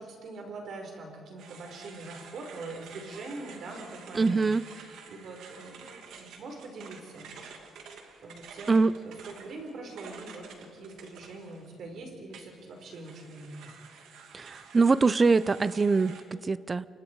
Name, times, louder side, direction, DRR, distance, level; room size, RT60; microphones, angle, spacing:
voice 1, 0.0-7.3 8.2-13.5, right 2 dB, 55° right, 2 dB, 4.5 m, -43 dB
sound 1, 1.4-11.9 12.3-16.2, right 6 dB, 80° right, 2.6 m, -49 dB
voice 2, 4.1-4.6 8.7-9.0 14.3-16.9, right 4 dB, 20° right, 18 dB, 0.4 m, -24 dB
29.5 x 25.5 x 4.7 m, 2.6 s
cardioid pair, 170°, 0 cm